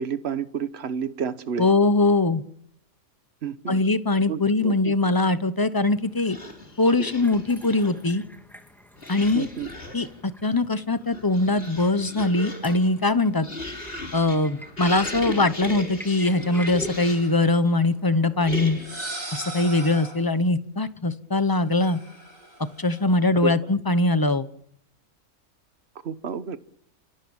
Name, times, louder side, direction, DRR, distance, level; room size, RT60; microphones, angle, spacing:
voice 1, 0.0-1.7 3.4-3.8 4.3-4.9 9.3-9.7 23.3-23.5 26.0-26.6, right 7 dB, 50° right, 12 dB, 1.4 m, -30 dB
voice 2, 1.6-2.4 3.7-6.4 6.8-8.2 9.1-9.5 9.9-13.5 14.1-18.8 19.3-22.0 22.8-24.5, left 2 dB, 15° left, 12 dB, 0.9 m, -22 dB
sound 1, 5.8-18.4, equal, ahead, 2.8 m, -49 dB
sound 2, 6.2-8.1 9.0-10.2 10.9-17.4 18.4-19.1, left 1 dB, 40° left, 4.1 m, -37 dB
sound 3, 16.2-17.5 18.6-20.3 21.7-23.0, right 2 dB, 75° right, 8.4 m, -39 dB
29.5 x 17.5 x 7.3 m, 0.72 s
omnidirectional pair, 1.4 m